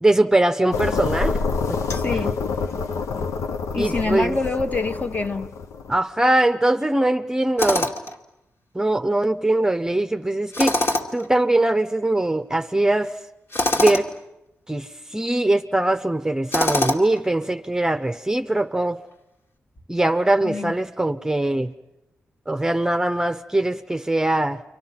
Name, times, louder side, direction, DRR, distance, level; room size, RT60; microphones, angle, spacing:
voice 1, 0.0-1.4 3.8-4.4 5.9-7.9 8.7-10.8 11.1-13.1 13.7-14.1 14.7-19.0 19.9-21.7 22.5-24.6, right 1 dB, 10° right, 0.8 m, -21 dB
sound 1, 0.7-6.0, left 4 dB, 85° left, 0.9 m, -27 dB
voice 2, 1.9-2.4 3.7-5.5 20.4-20.7, left 3 dB, 30° left, 1.4 m, -26 dB
Tools, 7.6-8.2 10.5-11.3 13.5-14.1 16.5-17.2, left 1 dB, 55° left, 2.2 m, -23 dB
29.5 x 24.5 x 5.9 m
cardioid pair, 60°, 5 cm